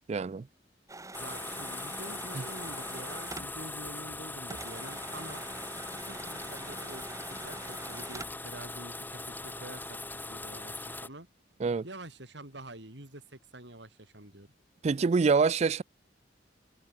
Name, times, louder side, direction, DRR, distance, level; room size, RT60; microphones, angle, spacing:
voice 1, 0.1-0.4 11.6-11.8 14.8-15.8, right 4 dB, 35° right, 0.3 m, -25 dB
sound 1, 0.9-4.2 4.5-8.5, right 2 dB, 20° right, 4.5 m, -45 dB
sound 2, 1.1-11.1, left 2 dB, 10° left, 3.8 m, -40 dB
voice 2, 1.2-5.5 6.0-11.3 11.8-14.5, right 1 dB, 65° right, 5.3 m, -47 dB
head